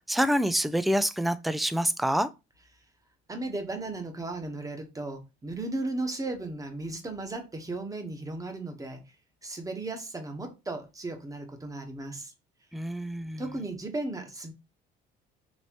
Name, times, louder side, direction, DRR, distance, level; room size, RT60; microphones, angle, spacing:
voice 1, 0.1-2.3 12.7-13.4, equal, ahead, 0.3 m, -26 dB
voice 2, 3.3-9.0 9.4-12.3 13.4-14.5, right 2 dB, 15° right, 1.2 m, -35 dB
4.1 x 3.1 x 3.0 m
cardioid pair, 100°, 20 cm